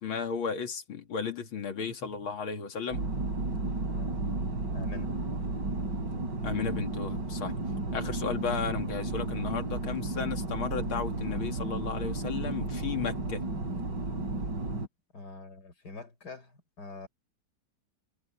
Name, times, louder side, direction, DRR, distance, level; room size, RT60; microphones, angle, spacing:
voice 1, 0.0-3.0 6.4-7.5 7.9-13.4, left 6 dB, 75° left, 2.8 m, -34 dB
sound 1, 2.9-14.9, right 2 dB, 60° right, 5.1 m, -33 dB
voice 2, 4.7-5.1 8.0-8.2 15.1-17.1, left 3 dB, 50° left, 4.5 m, -44 dB
omnidirectional pair, 2.3 m